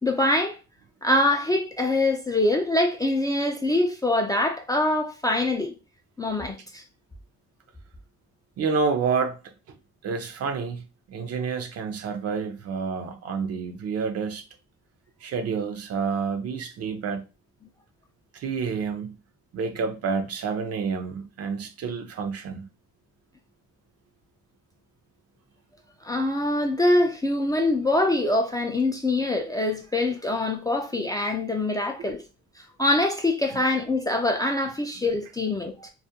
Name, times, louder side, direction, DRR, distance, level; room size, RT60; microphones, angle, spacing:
voice 1, 0.0-0.6 1.0-5.7 6.2-6.8 26.0-32.2 32.8-35.9, left 2 dB, 15° left, 0.3 m, -24 dB
voice 2, 8.6-9.4 10.0-14.4 15.2-17.2 18.3-19.2 19.5-22.6, right 5 dB, 55° right, 0.5 m, -29 dB
2.4 x 2.1 x 2.7 m
cardioid pair, 90°, 30 cm